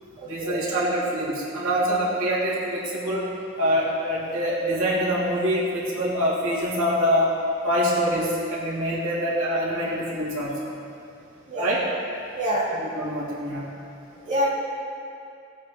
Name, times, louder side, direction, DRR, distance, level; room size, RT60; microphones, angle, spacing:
voice 1, 0.2-3.2 3.6-7.3 7.6-10.6 11.6-11.8 12.7-13.7, equal, 90° right, -7 dB, 3.0 m, -25 dB
voice 2, 12.3-12.7 14.2-14.5, equal, 40° right, -8 dB, 2.8 m, -25 dB
19.5 x 8.4 x 3.2 m, 2.6 s
head